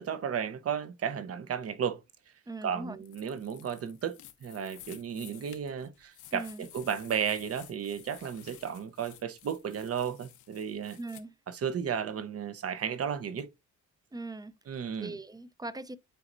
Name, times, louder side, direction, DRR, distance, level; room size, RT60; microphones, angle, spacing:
voice 1, 0.0-2.0 2.6-11.0 11.5-13.5 14.7-15.2, right 7 dB, 50° right, 0.9 m, -34 dB
voice 2, 2.5-3.0 6.3-6.7 11.0-11.3 14.1-14.5 15.0-16.0, right 2 dB, 15° right, 0.6 m, -40 dB
sound 1, 3.0-11.2, left 12 dB, 80° left, 0.9 m, -53 dB
9.2 x 4.2 x 2.6 m
cardioid pair, 90°, 30 cm